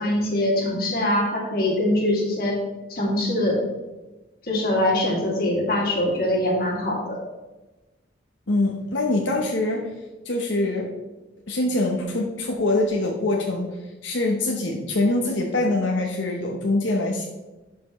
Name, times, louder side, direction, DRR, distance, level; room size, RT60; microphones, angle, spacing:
voice 1, 0.0-2.6 2.9-3.6 4.4-7.2, left 1 dB, 50° left, -2 dB, 2.3 m, -23 dB
voice 2, 8.5-9.9 10.2-10.9 11.5-13.8 14.0-17.2, left 2 dB, 85° left, 0 dB, 1.0 m, -24 dB
11.5 x 5.9 x 3.2 m, 1.1 s
head